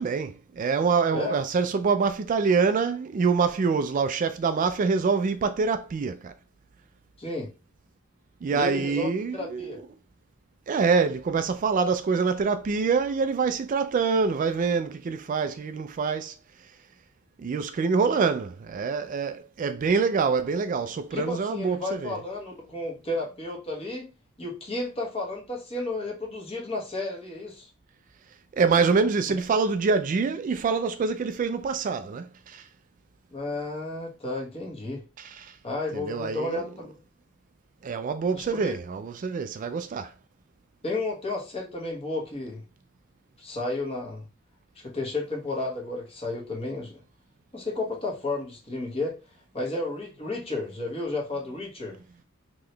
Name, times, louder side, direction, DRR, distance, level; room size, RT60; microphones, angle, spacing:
voice 1, 0.0-6.3 8.4-9.7 10.7-16.3 17.4-22.2 28.5-32.7 35.2-35.5 35.9-36.6 37.8-40.1, right 5 dB, 40° right, 0.3 m, -25 dB
voice 2, 7.2-7.5 8.5-9.8 21.1-24.1 24.4-27.7 29.3-29.4 33.3-35.0 35.6-37.0 38.3-38.7 40.8-42.6 43.4-44.3 44.8-47.0 47.5-49.1 49.5-52.0, left 2 dB, 30° left, 1.2 m, -32 dB
3.8 x 3.0 x 3.2 m
head